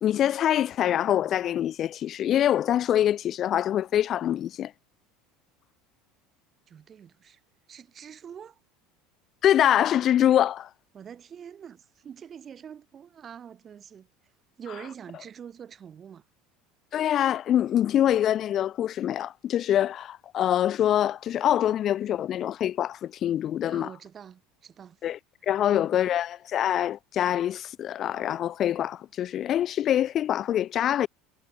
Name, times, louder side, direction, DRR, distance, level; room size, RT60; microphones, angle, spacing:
voice 1, 0.0-4.7 9.4-10.7 16.9-23.9 25.0-25.2 25.5-31.1, left 11 dB, 45° left, 1.2 m, -24 dB
voice 2, 6.7-7.4 7.7-8.6 10.9-14.1 14.6-16.2 23.7-25.0 25.7-25.9, right 8 dB, 35° right, 4.7 m, -45 dB
supercardioid pair, 95°, 0 cm